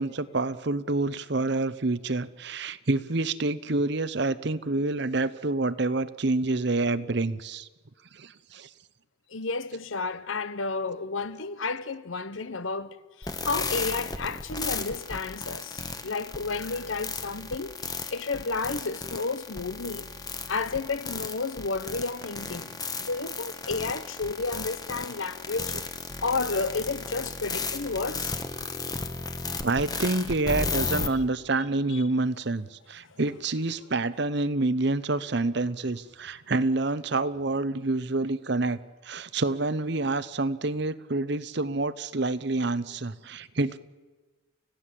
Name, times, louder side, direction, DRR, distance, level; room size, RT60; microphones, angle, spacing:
voice 1, 0.0-7.7 8.1-8.7 29.6-43.8, right 2 dB, 55° right, 0.8 m, -28 dB
voice 2, 9.3-20.1 20.5-25.8 26.2-28.3 31.9-32.0 33.0-33.2, left 3 dB, 75° left, 1.0 m, -32 dB
sound 1, 13.2-31.1, left 4 dB, 20° left, 1.2 m, -34 dB
30.0 x 16.0 x 7.7 m
head